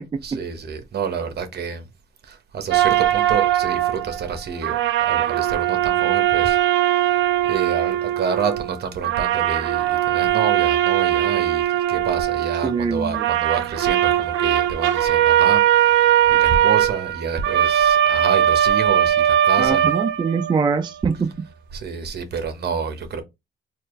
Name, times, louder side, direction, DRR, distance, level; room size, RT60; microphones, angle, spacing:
voice 1, 0.2-1.8 2.2-4.8 5.1-6.6 7.5-16.0 16.3-19.9 21.7-23.2, right 6 dB, 55° right, 1.0 m, -28 dB
sound 1, 2.7-4.4 4.6-8.8 9.0-12.9 13.1-20.7, right 11 dB, 75° right, 0.5 m, -20 dB
voice 2, 12.6-13.3 19.6-21.5, right 5 dB, 25° right, 0.4 m, -23 dB
4.2 x 2.5 x 3.1 m
cardioid pair, 90°, 20 cm